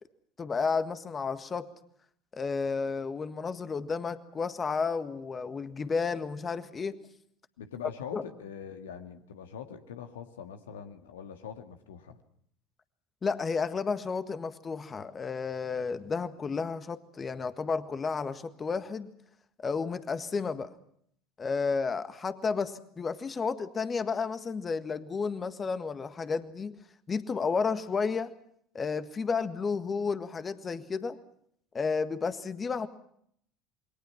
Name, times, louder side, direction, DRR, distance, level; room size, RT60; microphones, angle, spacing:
voice 1, 0.4-1.7 2.3-7.0 8.1-8.2 13.2-19.1 19.6-20.7 21.4-26.7 27.1-28.3 28.7-31.2 31.7-32.9, left 5 dB, 25° left, 11 dB, 1.6 m, -32 dB
voice 2, 7.6-12.2, left 8 dB, 75° left, 6 dB, 2.0 m, -43 dB
28.0 x 22.5 x 5.8 m, 0.68 s
figure-of-eight pair, 65°, 0 cm